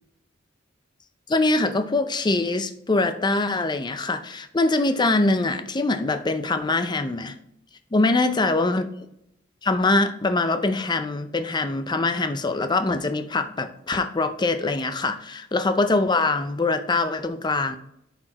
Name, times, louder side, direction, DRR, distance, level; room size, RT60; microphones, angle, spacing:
voice 1, 1.3-7.4 7.9-8.9 9.6-17.8, left 2 dB, 25° left, 0.5 m, -23 dB
11.5 x 4.3 x 3.0 m
head